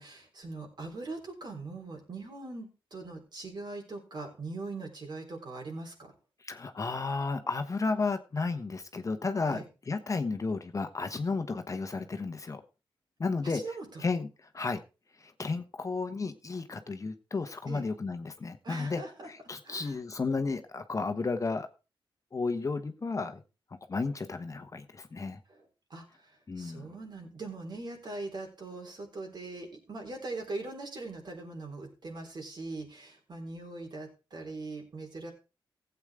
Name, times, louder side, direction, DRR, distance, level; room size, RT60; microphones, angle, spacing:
voice 1, 0.0-6.1 9.5-9.7 13.4-13.9 17.7-17.8 18.6-19.3 19.6-20.0 25.5-35.3, right 3 dB, 50° right, 2 dB, 3.9 m, -41 dB
voice 2, 6.4-9.6 9.9-12.6 13.2-13.6 14.0-14.3 14.5-14.8 15.2-19.0 19.3-21.7 22.3-23.4 23.9-25.4 26.5-26.9, left 4 dB, 35° left, 7 dB, 1.1 m, -33 dB
15.5 x 8.2 x 3.6 m, 0.31 s
cardioid pair, 80°, 9 cm